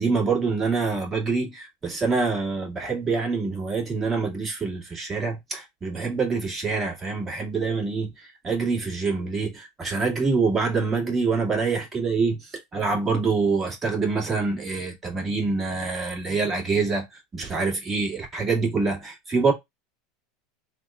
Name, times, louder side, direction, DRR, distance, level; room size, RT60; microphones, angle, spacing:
voice 1, 0.0-19.5, right 4 dB, 20° right, 1.8 m, -26 dB
3.4 x 2.3 x 3.6 m
supercardioid pair, 115°, 0 cm